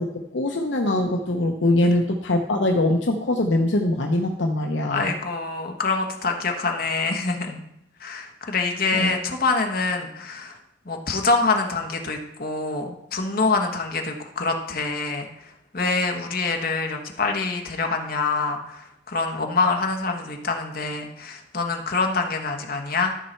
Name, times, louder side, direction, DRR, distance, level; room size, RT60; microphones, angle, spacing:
voice 1, 0.0-5.1 8.9-9.1, left 1 dB, 70° left, 2 dB, 0.8 m, -22 dB
voice 2, 4.9-7.6 8.0-10.6 10.8-23.2, left 3 dB, 50° left, 3 dB, 1.2 m, -25 dB
13.0 x 5.5 x 4.5 m, 0.83 s
head